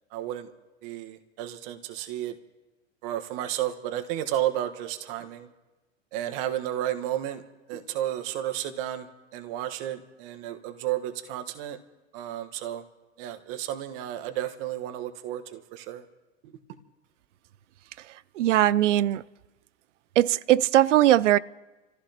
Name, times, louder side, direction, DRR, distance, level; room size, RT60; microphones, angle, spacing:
voice 1, 0.1-0.5 0.8-2.3 3.0-5.5 6.1-7.4 7.7-9.1 9.3-11.8 12.1-12.8 13.2-16.0 16.4-16.5, right 12 dB, 50° right, 1.4 m, -32 dB
voice 2, 18.0-19.2 20.2-21.4, right 13 dB, 70° right, 0.5 m, -21 dB
28.5 x 15.0 x 2.9 m
hypercardioid pair, 105°, 38 cm